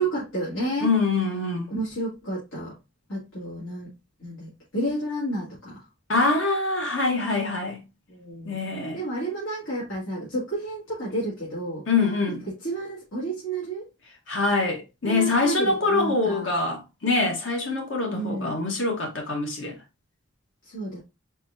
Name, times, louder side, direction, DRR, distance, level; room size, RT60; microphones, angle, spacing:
voice 1, 0.0-0.9 1.7-2.7 3.1-3.9 4.2-5.8 8.1-8.6 8.9-11.9 12.3-13.9 15.0-16.5 18.1-18.6 20.6-21.0, right 1 dB, 90° left, 2.3 m, -31 dB
voice 2, 0.8-1.7 6.1-7.8 8.4-9.0 11.9-12.4 14.3-19.8, left 3 dB, 70° left, 1.4 m, -24 dB
4.5 x 4.2 x 2.7 m
head